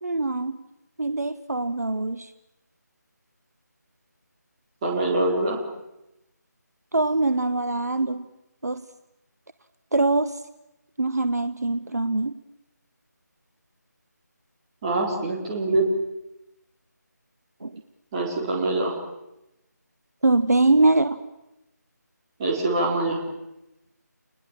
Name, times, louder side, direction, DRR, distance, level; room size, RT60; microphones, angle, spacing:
voice 1, 0.0-0.6 1.0-2.3 6.9-8.3 8.6-8.8 9.9-10.4 11.0-12.4 17.6-17.8 20.2-21.2, right 2 dB, 60° right, 11 dB, 1.2 m, -23 dB
voice 2, 4.8-5.6 14.8-15.9 18.1-19.0 22.4-23.2, right 2 dB, 15° right, -2 dB, 4.3 m, -24 dB
30.0 x 20.5 x 7.5 m, 0.92 s
figure-of-eight pair, 160°, 10 cm